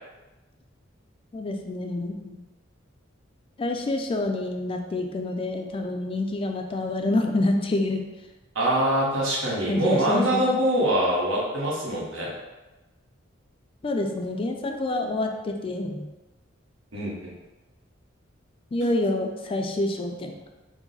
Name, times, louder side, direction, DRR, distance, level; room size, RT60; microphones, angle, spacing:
voice 1, 1.3-2.4 3.6-8.1 9.7-10.4 13.8-16.1 18.7-20.3, left 2 dB, 25° left, 4 dB, 0.3 m, -27 dB
voice 2, 8.5-12.3 16.9-17.3, right 1 dB, 85° right, -5 dB, 1.2 m, -24 dB
4.7 x 2.1 x 3.9 m, 1.1 s
head